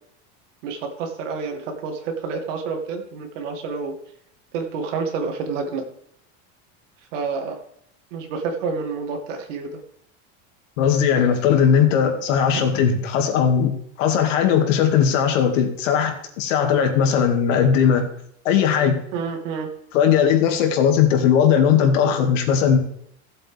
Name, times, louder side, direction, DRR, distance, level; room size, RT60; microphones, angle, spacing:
voice 1, 0.6-4.0 4.5-5.8 7.1-7.6 8.1-9.8 12.5-12.6 19.1-19.7, right 5 dB, 80° right, 3 dB, 2.3 m, -28 dB
voice 2, 10.8-18.1 18.4-19.0 19.9-22.8, left 8 dB, 85° left, 4 dB, 2.2 m, -18 dB
16.0 x 7.6 x 3.4 m, 0.69 s
cardioid pair, 170°, 37 cm